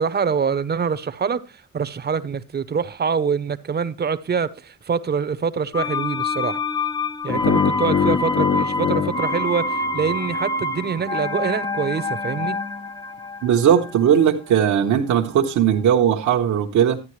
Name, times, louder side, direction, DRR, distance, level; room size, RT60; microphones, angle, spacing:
voice 1, 0.0-6.6 7.2-12.6, right 6 dB, 35° right, 0.8 m, -25 dB
sound 1, 5.7-15.5 15.7-15.8, left 2 dB, 15° left, 0.6 m, -27 dB
sound 2, 7.3-10.4, left 7 dB, 50° left, 0.7 m, -24 dB
voice 2, 13.4-17.0, right 9 dB, 75° right, 1.0 m, -18 dB
12.0 x 9.3 x 3.1 m
cardioid pair, 90°, 30 cm